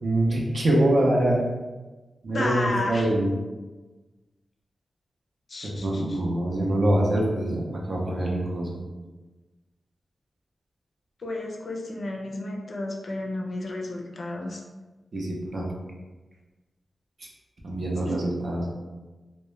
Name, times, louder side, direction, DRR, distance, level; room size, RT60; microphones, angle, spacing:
voice 1, 0.0-1.4 2.2-3.3 5.6-8.8 15.1-15.7 17.6-18.7, right 1 dB, 50° right, -2 dB, 0.5 m, -24 dB
voice 2, 2.3-3.1 5.5-6.2 11.2-14.6 18.1-18.2, left 2 dB, 55° left, 0 dB, 0.4 m, -32 dB
2.2 x 2.1 x 3.0 m, 1.2 s
wide cardioid pair, 115°, 0 cm